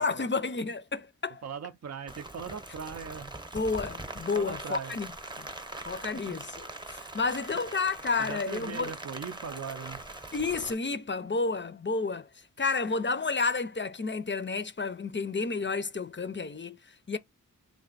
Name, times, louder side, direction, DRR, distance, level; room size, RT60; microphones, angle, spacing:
voice 1, 0.0-1.4 3.5-5.1 5.4-5.5 5.8-8.9 10.3-12.3 12.6-17.2, left 4 dB, 35° left, 0.5 m, -31 dB
voice 2, 1.4-3.3 4.4-5.0 6.3-6.4 8.2-10.0, right 6 dB, 50° right, 0.5 m, -40 dB
Rain, 2.1-10.7, right 2 dB, 15° right, 0.8 m, -42 dB
3.3 x 2.5 x 3.9 m
wide cardioid pair, 45°, 33 cm